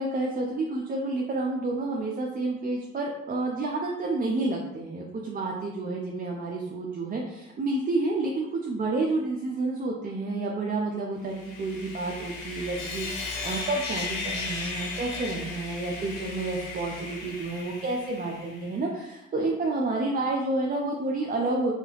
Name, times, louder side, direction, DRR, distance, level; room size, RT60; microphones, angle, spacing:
voice 1, 0.0-21.7, right 2 dB, 30° right, 0 dB, 0.4 m, -30 dB
Sawing, 11.3-18.7, left 3 dB, 85° left, 0.7 m, -36 dB
2.8 x 2.3 x 3.2 m, 0.89 s
cardioid pair, 90°, 30 cm